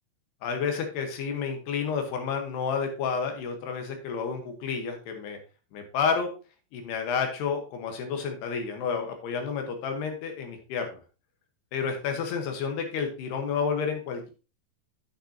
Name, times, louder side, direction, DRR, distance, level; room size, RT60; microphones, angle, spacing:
voice 1, 0.4-5.4 5.7-6.3 6.7-11.0 11.7-14.3, left 6 dB, 70° left, 5 dB, 2.9 m, -30 dB
9.0 x 8.9 x 2.8 m, 0.33 s
omnidirectional pair, 5.6 m